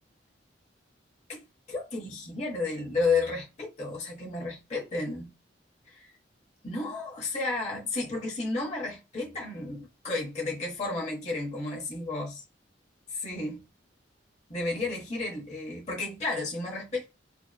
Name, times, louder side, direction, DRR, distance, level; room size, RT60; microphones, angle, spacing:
voice 1, 1.7-5.3 5.9-6.1 6.6-12.4 13.1-13.6 14.5-17.0, left 3 dB, 40° left, 0.9 m, -32 dB
2.8 x 2.1 x 2.2 m
head